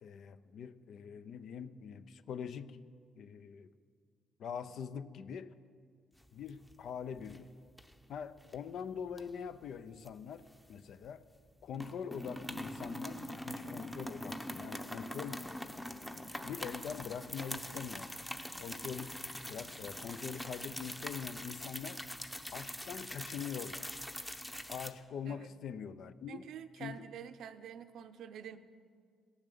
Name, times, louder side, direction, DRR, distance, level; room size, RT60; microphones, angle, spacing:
voice 1, 0.0-2.8 3.2-3.7 4.4-5.6 6.3-7.5 8.1-11.2 11.6-15.4 16.4-18.1 18.6-19.2 19.5-22.0 22.5-23.9 24.7-26.5 26.8-27.1, left 7 dB, 70° left, 13 dB, 0.5 m, -43 dB
sound 1, 6.2-6.9 7.2-7.4 7.8-8.6 9.1-11.1 11.3-11.5 11.7-24.9, left 1 dB, 10° left, 0.7 m, -43 dB
voice 2, 26.3-28.6, right 8 dB, 75° right, 10 dB, 0.6 m, -47 dB
17.5 x 7.2 x 6.8 m, 2.1 s
cardioid pair, 90°, 0 cm